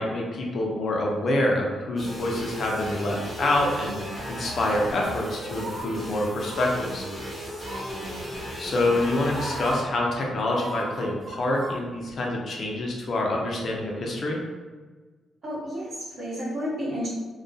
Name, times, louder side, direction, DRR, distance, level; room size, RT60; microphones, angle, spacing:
voice 1, 0.0-4.0 4.3-7.0 8.6-14.4, left 1 dB, 50° left, -1 dB, 0.5 m, -26 dB
sound 1, 2.0-9.8, equal, 5° right, 1.0 m, -36 dB
sound 2, 5.5-5.8 6.4-6.7 7.6-8.0 8.9-9.0 9.3-9.7 10.5-11.8 12.1-12.2, right 1 dB, 30° right, 0.5 m, -36 dB
voice 2, 7.6-8.4 15.4-17.1, equal, 70° right, -12 dB, 1.1 m, -33 dB
2.2 x 2.2 x 2.6 m, 1.4 s
cardioid pair, 115°, 0 cm